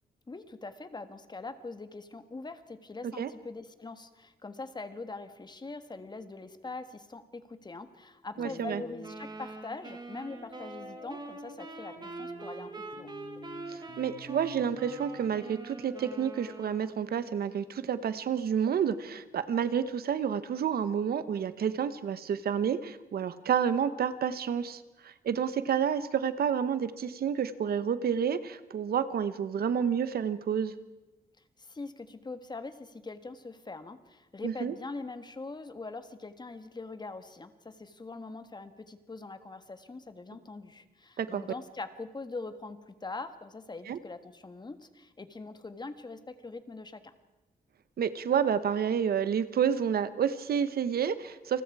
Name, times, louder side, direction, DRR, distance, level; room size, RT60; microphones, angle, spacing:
voice 1, 0.3-13.1 31.6-47.1, left 3 dB, 25° left, 10 dB, 1.5 m, -42 dB
sound 1, 8.4-9.2 10.3-15.3, left 3 dB, 65° left, 7.2 m, -49 dB
voice 2, 8.4-8.8 13.7-30.7 34.4-34.7 41.2-41.4 43.9-44.0 48.0-51.6, right 8 dB, 75° right, 13 dB, 1.1 m, -29 dB
sound 2, 9.0-17.0, right 3 dB, 25° right, 2.5 m, -44 dB
29.0 x 20.5 x 4.8 m, 1.1 s
cardioid pair, 105°, 16 cm